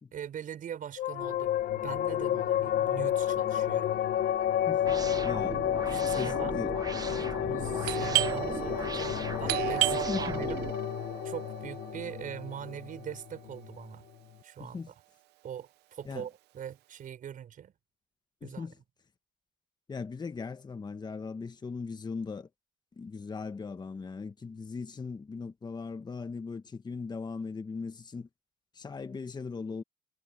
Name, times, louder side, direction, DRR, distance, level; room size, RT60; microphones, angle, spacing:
voice 1, 0.1-3.9 5.9-6.5 7.1-10.6 11.2-14.0 14.4-14.9 15.4-17.7 18.4-18.7, right 9 dB, 50° right, 5.7 m, -42 dB
sound 1, 1.0-13.8, left 11 dB, 70° left, 1.5 m, -31 dB
sound 2, 4.8-10.7, right 4 dB, 20° right, 0.9 m, -38 dB
voice 2, 5.2-5.6 6.2-6.7 9.9-10.4 14.6-14.9 16.0-16.3 18.4-18.8 19.9-22.5 23.0-28.3 28.7-29.8, left 4 dB, 25° left, 1.5 m, -39 dB
Doorbell, 7.8-13.3, right 20 dB, 80° right, 0.8 m, -34 dB
cardioid pair, 110°, 17 cm